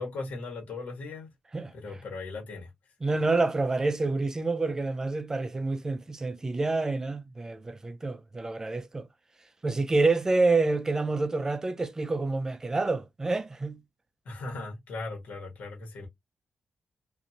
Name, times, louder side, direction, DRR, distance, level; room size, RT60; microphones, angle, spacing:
voice 1, 0.0-1.3 1.7-2.9 14.2-16.1, left 3 dB, 75° left, 1.3 m, -38 dB
voice 2, 3.0-9.1 9.6-13.8, right 3 dB, 20° right, 0.3 m, -28 dB
2.6 x 2.5 x 2.8 m
wide cardioid pair, 130°, 3 cm